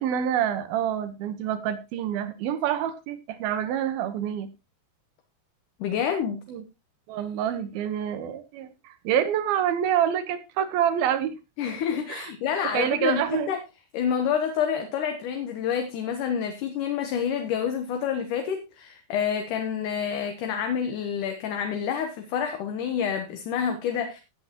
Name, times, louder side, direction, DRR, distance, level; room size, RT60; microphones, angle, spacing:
voice 1, 0.0-4.5 6.5-6.6 7.1-11.3 12.1-12.3 12.7-13.5, right 9 dB, 80° right, 11 dB, 3.0 m, -27 dB
voice 2, 5.8-6.4 11.6-13.6 13.9-24.2, left 8 dB, 65° left, 5 dB, 2.4 m, -28 dB
16.5 x 8.4 x 2.9 m, 0.26 s
omnidirectional pair, 4.3 m